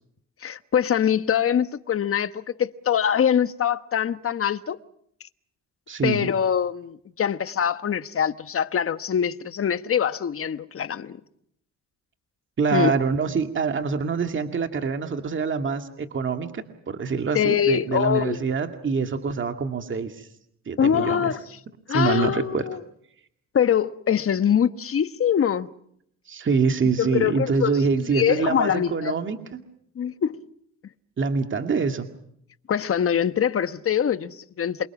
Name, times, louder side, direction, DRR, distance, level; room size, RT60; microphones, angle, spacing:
voice 1, 0.4-4.8 6.0-11.2 12.7-12.9 17.3-18.4 20.8-21.4 21.9-22.8 23.5-25.7 27.0-27.7 28.1-29.1 29.9-30.4 32.7-34.9, left 8 dB, 45° left, 1.3 m, -23 dB
voice 2, 5.9-6.3 12.6-20.3 20.7-21.4 21.9-22.6 26.3-29.6 31.2-32.1, right 5 dB, 40° right, 2.3 m, -25 dB
28.0 x 24.5 x 6.1 m
cardioid pair, 90°, 30 cm